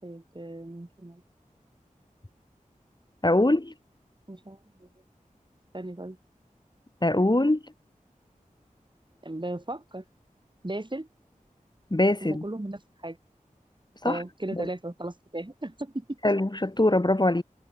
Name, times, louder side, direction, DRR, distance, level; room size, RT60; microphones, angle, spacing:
voice 1, 0.0-1.2 4.3-4.9 5.7-6.2 9.2-10.0 10.6-11.1 12.2-13.2 14.0-16.2, right 1 dB, 35° right, 7.7 m, -36 dB
voice 2, 3.2-3.7 7.0-7.6 11.9-12.4 14.0-14.2 14.5-14.7 16.2-17.4, left 1 dB, 30° left, 3.2 m, -23 dB
wide cardioid pair, 45°, 14 cm